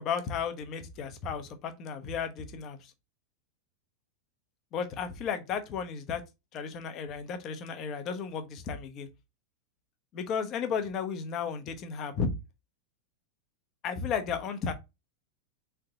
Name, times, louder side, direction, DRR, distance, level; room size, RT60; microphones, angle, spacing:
voice 1, 0.0-2.9 4.7-6.2 6.5-9.1 10.1-12.3 13.8-14.7, left 6 dB, 35° left, 0.9 m, -34 dB
3.7 x 3.4 x 3.9 m
figure-of-eight pair, 90°, 0 cm